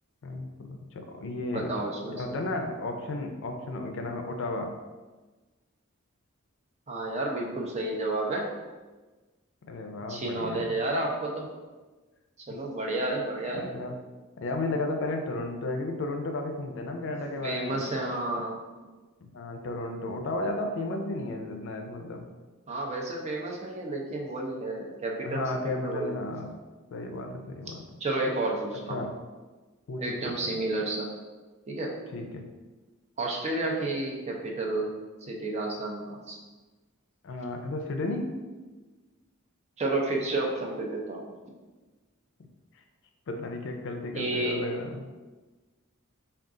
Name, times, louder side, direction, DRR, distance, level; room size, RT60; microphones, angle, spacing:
voice 1, 0.2-1.8 2.2-4.7 9.6-10.8 12.5-12.6 13.5-13.9 14.4-17.8 19.2-22.3 25.2-26.6 26.9-27.8 28.9-29.2 29.9-30.3 32.1-32.5 37.2-38.3 43.3-45.1, left 2 dB, 60° left, 4 dB, 0.4 m, -33 dB
voice 2, 1.5-2.2 6.9-8.5 10.1-11.5 12.5-13.7 17.4-18.6 22.7-26.2 28.0-29.0 30.0-31.1 31.7-32.0 33.2-34.9 35.2-36.4 39.8-41.3 44.1-44.6, right 2 dB, 30° right, -1 dB, 0.5 m, -31 dB
3.6 x 2.4 x 3.7 m, 1.2 s
head